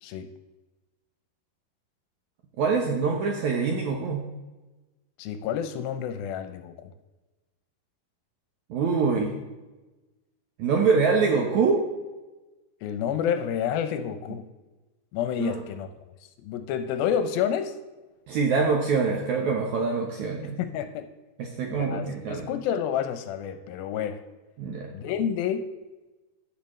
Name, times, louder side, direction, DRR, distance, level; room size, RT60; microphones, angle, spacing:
voice 1, 2.6-4.2 8.7-9.4 10.6-11.8 15.4-15.6 18.3-20.6 21.4-22.5 24.6-24.9, right 5 dB, 70° right, 1 dB, 1.8 m, -24 dB
voice 2, 5.2-6.9 12.8-14.5 15.1-15.9 16.4-17.8 20.4-21.1 21.7-24.2 24.9-25.7, left 8 dB, 80° left, 9 dB, 2.3 m, -29 dB
17.0 x 6.6 x 3.1 m, 1.1 s
omnidirectional pair, 4.5 m